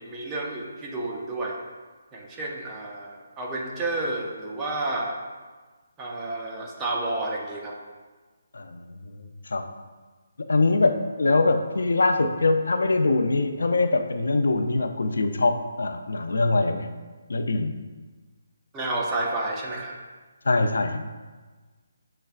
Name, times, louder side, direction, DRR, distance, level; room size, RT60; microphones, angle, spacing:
voice 1, 0.0-1.6 2.1-5.2 6.0-7.8 18.7-20.0, right 2 dB, 10° right, -2 dB, 0.5 m, -30 dB
voice 2, 8.5-8.9 9.5-9.6 10.5-16.9 17.3-17.7 20.5-21.0, left 3 dB, 85° left, 7 dB, 0.4 m, -23 dB
6.6 x 3.2 x 2.4 m, 1.3 s
hypercardioid pair, 170°, 0 cm